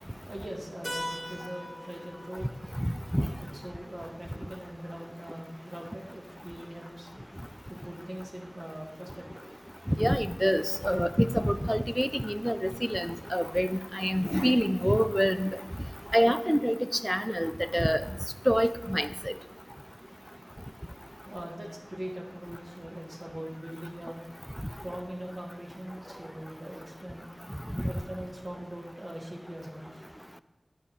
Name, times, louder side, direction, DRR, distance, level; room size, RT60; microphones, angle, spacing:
voice 1, 0.3-2.5 3.5-7.1 7.7-9.5 21.3-24.2 24.8-27.3 27.9-30.0, equal, 45° right, 0 dB, 1.5 m, -41 dB
Keyboard (musical), 0.8-5.3, equal, 20° right, 2.4 m, -43 dB
voice 2, 10.0-15.6 16.1-16.8 17.0-18.0 18.5-19.1 27.7-27.9, equal, ahead, 12 dB, 0.4 m, -26 dB
10.0 x 5.1 x 4.2 m, 1.0 s
wide cardioid pair, 50°, 0 cm